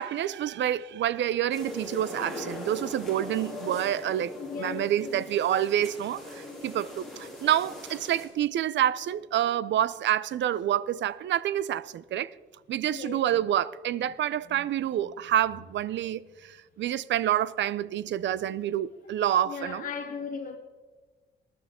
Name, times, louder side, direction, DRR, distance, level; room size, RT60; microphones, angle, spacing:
voice 1, 0.0-4.3 4.6-12.3 12.7-19.9, right 11 dB, 65° right, 0.5 m, -28 dB
sound 1, 1.5-8.3, left 2 dB, ahead, 3.3 m, -40 dB
voice 2, 4.4-5.3 12.9-13.3 14.5-14.7 15.0-15.1 18.3-18.6 19.0-19.1 19.4-20.6, left 5 dB, 45° left, 1.1 m, -38 dB
20.5 x 11.0 x 3.6 m
wide cardioid pair, 175°, 20 cm